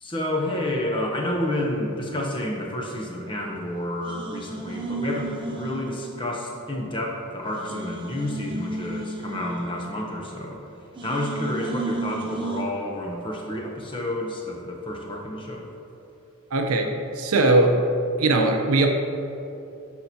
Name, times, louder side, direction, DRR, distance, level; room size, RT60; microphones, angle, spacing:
voice 1, 0.0-10.6 11.0-15.7, left 1 dB, 20° left, 0 dB, 0.7 m, -30 dB
sound 1, 3.0-3.7 4.0-6.6 6.9-7.0 7.5-10.6 10.9-12.6, right 2 dB, 20° right, 0.6 m, -34 dB
voice 2, 16.5-17.7 18.2-18.9, right 2 dB, 75° right, 3 dB, 0.6 m, -20 dB
10.0 x 4.3 x 2.7 m, 2.8 s
head